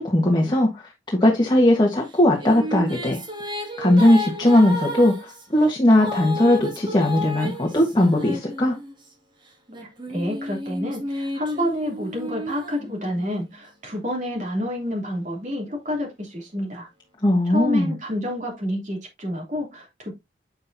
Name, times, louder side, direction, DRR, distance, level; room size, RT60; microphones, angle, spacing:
voice 1, 0.0-3.2 3.6-8.8 17.2-17.9, left 1 dB, 25° left, 1.3 m, -19 dB
Female singing, 2.1-9.0 9.7-13.4, left 1 dB, 25° right, 2.1 m, -32 dB
voice 2, 9.8-16.9 17.4-20.1, left 1 dB, 40° right, 2.9 m, -29 dB
8.2 x 6.6 x 2.7 m
head